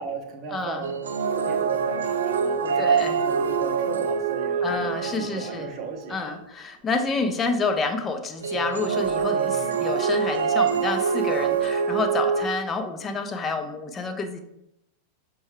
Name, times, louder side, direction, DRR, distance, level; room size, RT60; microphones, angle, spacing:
voice 1, 0.0-6.4 9.3-9.9, right 4 dB, 35° right, 3 dB, 0.7 m, -37 dB
voice 2, 0.5-0.9 2.8-3.2 4.6-5.7 6.1-14.4, left 4 dB, 20° left, 6 dB, 0.5 m, -28 dB
sound 1, 0.8-5.9 8.4-12.5, right 6 dB, 65° right, 0.3 m, -25 dB
6.2 x 2.2 x 3.0 m, 0.82 s
figure-of-eight pair, 90°, 0 cm